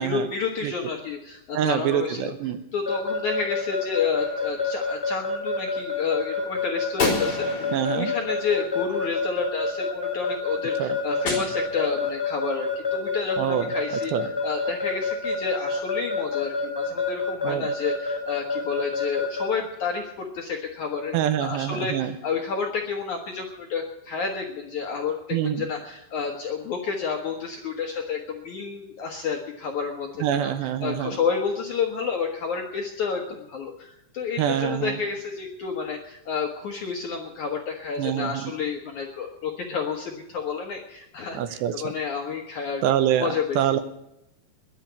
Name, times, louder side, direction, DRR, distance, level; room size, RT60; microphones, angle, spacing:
voice 1, 0.0-2.3 2.7-14.1 14.4-30.5 30.8-42.8 43.2-43.6, left 5 dB, 65° left, 2 dB, 1.9 m, -30 dB
voice 2, 1.5-2.6 7.7-8.1 10.8-11.0 13.4-13.7 14.1-14.3 17.4-17.7 21.1-22.1 25.3-25.7 30.2-31.2 34.4-35.0 38.0-38.5 41.3-41.7 42.8-43.8, right 10 dB, 80° right, 11 dB, 2.8 m, -25 dB
Keyboard (musical) / Alarm, 2.9-19.5, left 4 dB, 5° left, 2.7 m, -27 dB
Gunshot gunfire, 4.0-5.0 7.0-9.4 11.3-12.2, left 3 dB, 30° left, 4.1 m, -32 dB
21.5 x 7.5 x 8.1 m, 0.86 s
omnidirectional pair, 5.3 m